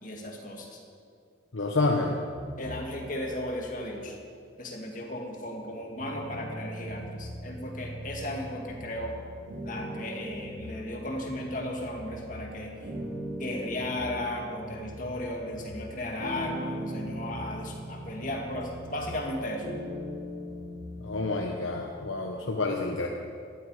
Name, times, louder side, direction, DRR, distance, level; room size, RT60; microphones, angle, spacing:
voice 1, 0.0-0.8 2.6-4.1 4.6-9.2 9.6-12.7 13.4-19.7, left 1 dB, 40° left, 0 dB, 2.2 m, -35 dB
voice 2, 1.5-2.2 21.0-23.1, left 3 dB, 90° left, 1 dB, 1.1 m, -28 dB
sound 1, 2.3-4.1 4.7-21.3, equal, 80° right, 4.9 m, -40 dB
18.0 x 13.0 x 4.9 m, 2.3 s
head